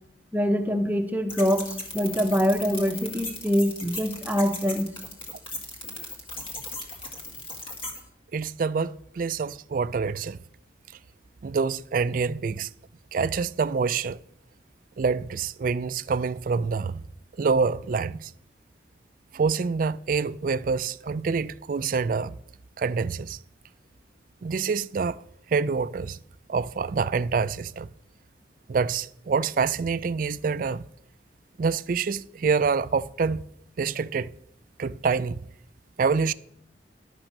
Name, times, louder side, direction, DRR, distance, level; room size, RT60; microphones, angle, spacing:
voice 1, 0.3-4.9, equal, 10° right, 0.9 m, -24 dB
sound 1, 1.3-8.0, left 2 dB, 30° left, 1.8 m, -37 dB
voice 2, 8.3-10.4 11.4-12.7 13.1-14.2 15.0-17.0 17.4-18.3 19.3-22.3 22.8-23.4 24.4-25.2 25.5-26.2 26.5-27.9 28.7-30.9 31.6-33.4 33.8-34.3 34.8-35.4 36.0-36.3, right 5 dB, 50° right, 0.3 m, -26 dB
11.5 x 5.9 x 6.5 m
head